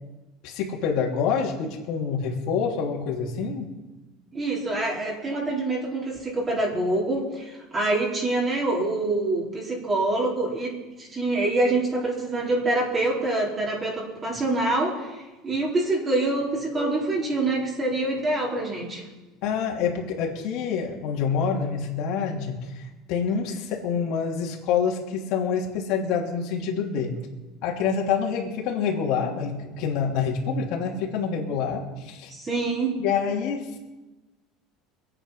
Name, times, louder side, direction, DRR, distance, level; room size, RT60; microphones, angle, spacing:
voice 1, 0.4-3.7 19.4-22.6 23.1-27.2 27.6-32.3 33.0-33.8, left 6 dB, 60° left, -1 dB, 3.1 m, -27 dB
voice 2, 4.3-10.7 11.0-19.0 32.3-33.0, right 2 dB, 25° right, -4 dB, 4.1 m, -26 dB
23.0 x 8.9 x 5.7 m, 1.1 s
supercardioid pair, 125°, 0 cm